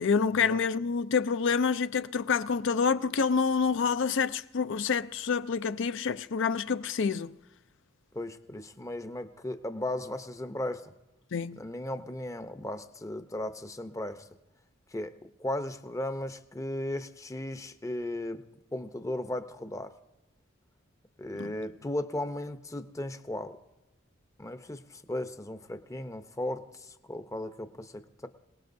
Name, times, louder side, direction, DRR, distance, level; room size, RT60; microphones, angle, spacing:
voice 1, 0.0-7.3 11.3-11.6 21.4-21.5, left 5 dB, 60° left, 0.5 m, -27 dB
voice 2, 8.1-10.9 11.6-14.3 14.9-18.4 18.7-19.9 21.2-23.6 24.4-28.3, left 1 dB, 15° left, 0.7 m, -36 dB
27.0 x 18.5 x 2.7 m
head